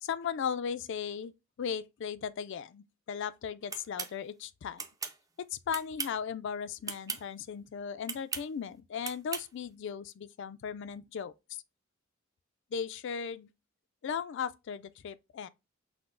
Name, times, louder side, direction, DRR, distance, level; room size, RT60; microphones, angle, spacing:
voice 1, 0.0-4.8 5.4-11.3 12.7-13.5 14.0-15.5, left 7 dB, 60° left, 0.4 m, -37 dB
sound 1, 3.7-4.1 4.8-5.2 5.7-6.2 6.8-7.2 8.0-8.5 9.0-9.5, right 5 dB, 15° right, 0.4 m, -37 dB
5.7 x 2.0 x 3.7 m
head